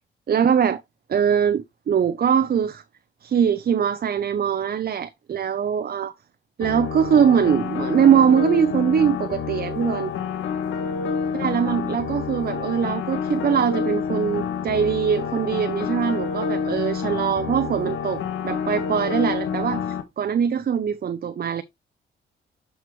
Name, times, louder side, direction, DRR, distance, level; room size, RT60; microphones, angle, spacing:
voice 1, 0.3-0.8 1.1-2.8 3.2-6.1 6.6-10.1 11.3-21.6, right 8 dB, 50° right, 0.7 m, -22 dB
sound 1, 6.6-20.0, left 6 dB, 80° left, 1.5 m, -28 dB
7.7 x 4.8 x 3.1 m
cardioid pair, 75°, 20 cm